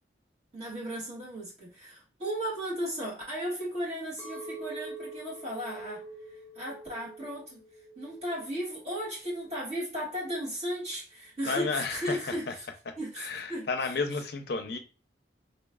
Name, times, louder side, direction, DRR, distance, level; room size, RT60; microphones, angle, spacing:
voice 1, 0.5-7.6 7.9-12.7 13.0-13.7, equal, 35° right, 1.6 m, -35 dB
Chink clink, 4.2-9.6, right 2 dB, 15° right, 0.9 m, -45 dB
voice 2, 11.5-12.5 12.9-14.8, left 4 dB, 60° left, 0.5 m, -32 dB
3.9 x 3.0 x 2.3 m
head